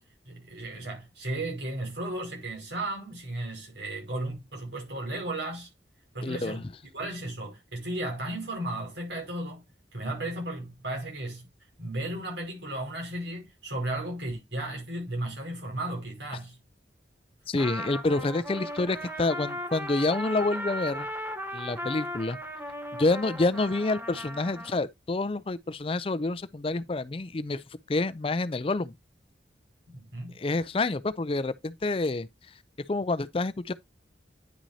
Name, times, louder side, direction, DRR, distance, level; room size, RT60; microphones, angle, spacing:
voice 1, 0.3-5.7 6.1-6.7 6.9-9.6 9.9-11.5 11.8-16.6 29.9-30.4, right 1 dB, 80° right, 5.2 m, -35 dB
voice 2, 6.2-6.7 17.5-21.1 21.5-22.4 22.9-27.6 27.9-28.9 30.4-32.3 32.9-33.7, left 2 dB, 30° left, 0.4 m, -28 dB
Trumpet, 17.6-24.8, equal, 10° right, 1.1 m, -37 dB
9.8 x 6.0 x 2.7 m
head